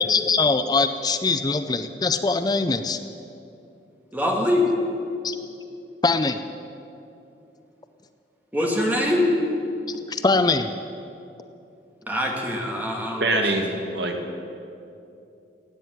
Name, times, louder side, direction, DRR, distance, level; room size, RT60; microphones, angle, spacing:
voice 1, 0.0-3.0 5.2-5.4 6.0-6.4 10.1-10.7, left 3 dB, 25° left, 10 dB, 0.4 m, -22 dB
voice 2, 4.1-4.7 8.5-9.3 12.1-13.3, left 1 dB, 10° right, -1 dB, 2.2 m, -23 dB
voice 3, 13.2-14.2, right 2 dB, 80° right, 3 dB, 2.0 m, -24 dB
16.0 x 9.1 x 9.4 m, 2.7 s
head